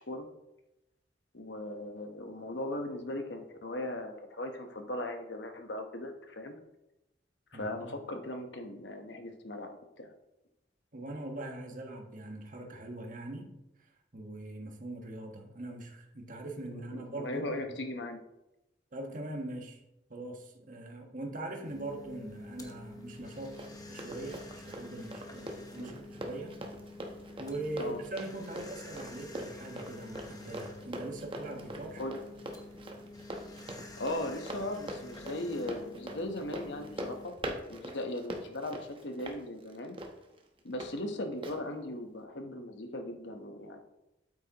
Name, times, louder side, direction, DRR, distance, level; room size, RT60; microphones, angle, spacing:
voice 1, 1.3-6.5 7.5-10.1 17.2-18.2 25.8-25.9 27.8-28.0 32.0-32.2 34.0-37.3 37.7-40.0 40.6-43.8, left 1 dB, 80° left, 5 dB, 1.1 m, -38 dB
voice 2, 7.5-8.0 10.9-13.5 14.1-17.6 18.9-19.8 20.1-26.6 27.4-32.0, right 2 dB, 50° right, 2 dB, 1.4 m, -41 dB
sound 1, 21.6-37.3, left 2 dB, 20° left, 1.0 m, -49 dB
Run, 23.1-40.9 41.4-41.6, right 1 dB, 30° right, 1.0 m, -43 dB
8.7 x 8.4 x 3.0 m, 0.90 s
head